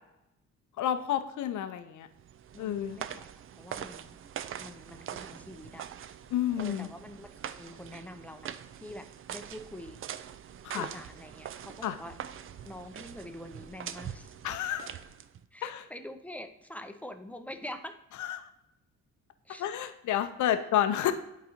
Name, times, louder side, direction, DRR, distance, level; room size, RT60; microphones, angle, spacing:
voice 1, 0.8-2.1 2.6-3.0 6.3-6.9 10.6-10.9 11.8-12.0 14.4-14.9 15.6-15.9 18.2-18.5 19.6-21.1, left 11 dB, 75° left, 9 dB, 0.7 m, -30 dB
sound 1, 2.2-15.5, right 9 dB, 45° right, 0.4 m, -43 dB
voice 2, 2.5-4.2 4.6-5.9 6.6-10.0 10.7-12.2 12.6-14.4 15.5-17.9 19.4-19.6, left 1 dB, 5° left, 7 dB, 0.6 m, -45 dB
10.5 x 4.1 x 2.8 m, 0.89 s
cardioid pair, 90°, 30 cm